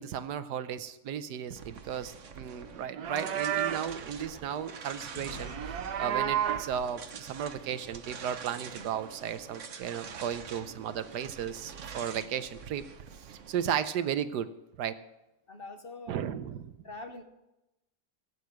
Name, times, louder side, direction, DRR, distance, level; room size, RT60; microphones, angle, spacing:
voice 1, 0.0-12.8 13.2-14.5 14.8-15.0 16.1-16.6, right 9 dB, 90° right, 12 dB, 1.4 m, -35 dB
sound 1, 1.5-13.8, right 6 dB, 50° right, 1.2 m, -46 dB
Livestock farm animals working animals, 2.8-3.9 5.2-6.7, right 10 dB, 70° right, 1.3 m, -32 dB
sound 2, 5.0-8.6, right 1 dB, 85° left, 3.7 m, -48 dB
voice 2, 15.5-16.3 16.8-17.2, left 2 dB, 40° left, 7 dB, 1.0 m, -44 dB
16.0 x 8.3 x 6.3 m, 0.94 s
omnidirectional pair, 1.7 m